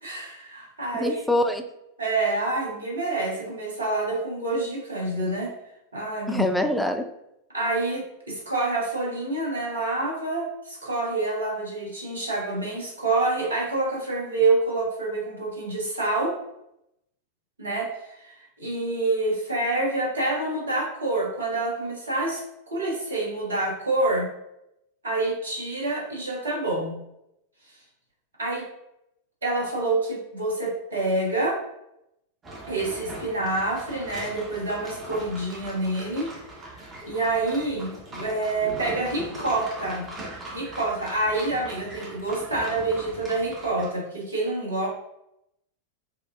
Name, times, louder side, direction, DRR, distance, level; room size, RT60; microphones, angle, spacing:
voice 1, 0.0-1.2 2.0-5.5 5.9-6.5 7.5-16.4 17.6-17.9 18.2-24.3 25.0-26.9 28.4-28.6 29.4-31.6 32.7-36.3 36.7-40.1 40.5-44.9, right 2 dB, 70° right, -2 dB, 1.1 m, -27 dB
voice 2, 0.9-1.6 6.3-7.0, left 1 dB, ahead, 5 dB, 0.4 m, -24 dB
sound 1, 32.4-43.9, right 1 dB, 20° right, 1.1 m, -40 dB
4.8 x 2.5 x 2.4 m, 0.82 s
figure-of-eight pair, 90°, 0 cm